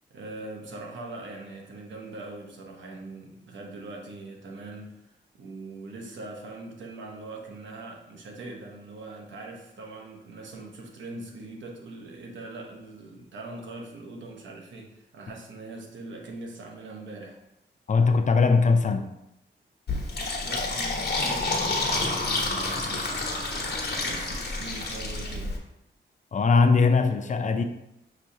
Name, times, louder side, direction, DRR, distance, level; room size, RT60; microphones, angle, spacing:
voice 1, 0.1-14.9 15.1-17.4 20.4-25.6, right 2 dB, 80° right, 0.9 m, -41 dB
voice 2, 17.9-19.1 26.3-27.6, left 4 dB, 40° left, 0.4 m, -20 dB
Fill (with liquid), 19.9-25.6, left 2 dB, 60° left, 1.1 m, -29 dB
6.2 x 3.1 x 2.7 m
cardioid pair, 90°, 19 cm